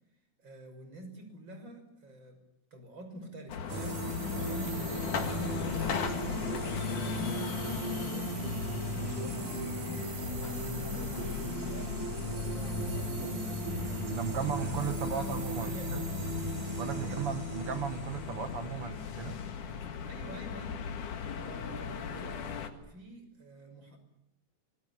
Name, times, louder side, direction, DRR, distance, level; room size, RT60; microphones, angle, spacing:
voice 1, 0.4-2.4 2.7-8.3 8.9-11.2 11.7-12.0 12.3-13.6 14.4-16.3 17.0-17.2 20.0-20.9 21.3-24.0, right 1 dB, 35° right, 6.8 m, -47 dB
sound 1, 3.5-22.7, left 7 dB, 85° left, 3.5 m, -38 dB
sound 2, 3.7-19.4, right 2 dB, 75° right, 4.6 m, -38 dB
sound 3, 7.7-16.5, left 3 dB, 65° left, 4.7 m, -45 dB
voice 2, 14.1-16.0 16.8-19.4, right 7 dB, 60° right, 1.9 m, -36 dB
25.5 x 22.0 x 10.0 m
omnidirectional pair, 3.5 m